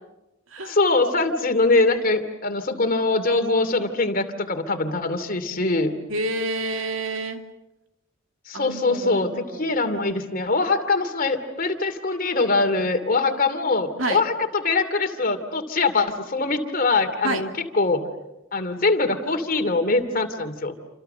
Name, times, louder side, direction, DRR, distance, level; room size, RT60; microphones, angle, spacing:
voice 1, 0.7-5.9 8.5-17.5 17.7-18.0 18.5-20.7, left 3 dB, 45° left, 7 dB, 2.6 m, -23 dB
voice 2, 6.1-7.4 8.5-9.8 14.0-14.2 17.2-17.4, right 2 dB, 75° right, 5 dB, 2.5 m, -28 dB
29.0 x 27.5 x 6.8 m, 0.97 s
head